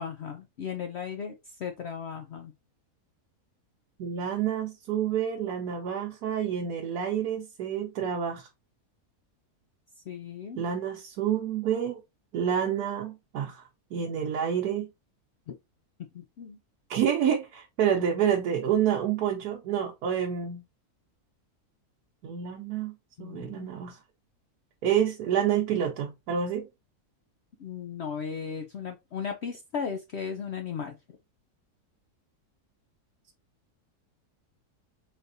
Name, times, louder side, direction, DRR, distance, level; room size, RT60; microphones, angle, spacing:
voice 1, 0.0-2.5 10.1-10.6 16.1-16.6 23.2-23.7 27.6-31.0, left 6 dB, 70° left, 0.6 m, -36 dB
voice 2, 4.0-8.5 10.6-12.0 12.3-13.6 13.9-14.9 16.9-20.6 22.2-22.9 23.2-24.0 24.8-26.7, right 9 dB, 80° right, 1.2 m, -28 dB
4.2 x 3.3 x 2.6 m
omnidirectional pair, 1.7 m